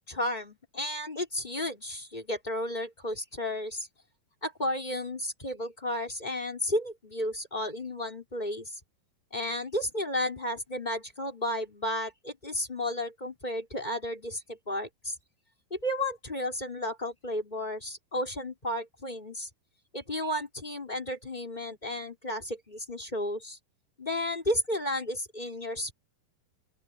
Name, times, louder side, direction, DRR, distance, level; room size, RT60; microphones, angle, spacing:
voice 1, 0.0-3.9 4.4-8.8 9.3-15.2 15.7-19.5 19.9-23.6 24.0-25.9, left 1 dB, 10° left, 4.1 m, -33 dB
open air
omnidirectional pair, 4.4 m